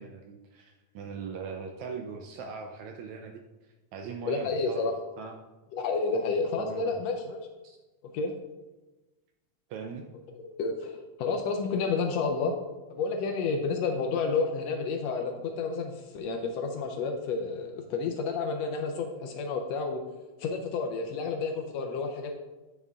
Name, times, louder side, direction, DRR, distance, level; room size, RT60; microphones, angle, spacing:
voice 1, 0.0-3.4 3.9-4.9 5.2-5.4 6.6-7.0 7.6-7.8 9.7-10.1, right 5 dB, 80° right, 4 dB, 1.8 m, -40 dB
voice 2, 4.2-5.0 5.7-7.5 8.0-8.3 10.4-12.6 12.9-20.0 20.4-22.3, left 4 dB, 75° left, 4 dB, 1.6 m, -30 dB
9.2 x 5.5 x 3.6 m, 1.1 s
omnidirectional pair, 3.6 m